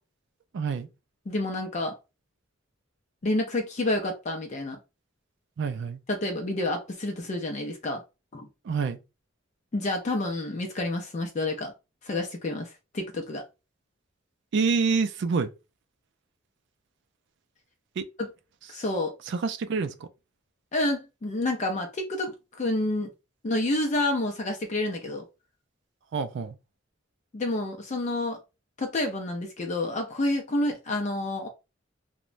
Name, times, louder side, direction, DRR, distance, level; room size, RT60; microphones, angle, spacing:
voice 1, 0.5-0.9 5.6-6.0 8.6-9.0 14.5-15.5 18.0-18.1 19.3-20.1 26.1-26.6, right 5 dB, 65° right, 0.3 m, -27 dB
voice 2, 1.3-2.0 3.2-4.8 6.1-8.0 8.3-8.5 9.7-11.7 12.0-13.4 18.7-19.2 20.7-23.1 23.4-25.2 27.3-28.4 28.8-31.5, left 2 dB, 35° left, 0.4 m, -29 dB
3.0 x 2.1 x 2.4 m
head